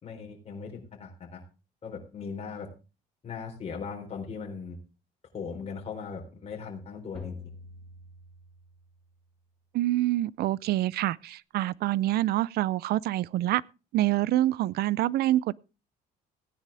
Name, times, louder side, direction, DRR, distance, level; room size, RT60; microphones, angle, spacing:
voice 1, 0.0-1.4 1.8-2.7 3.2-4.8 5.3-7.4, left 5 dB, 40° left, 3.9 m, -38 dB
sound 1, 7.1-9.1, left 4 dB, 5° left, 7.1 m, -44 dB
voice 2, 9.7-13.6 13.9-15.5, right 15 dB, 70° right, 0.5 m, -26 dB
16.5 x 10.0 x 3.4 m
cardioid pair, 110°, 17 cm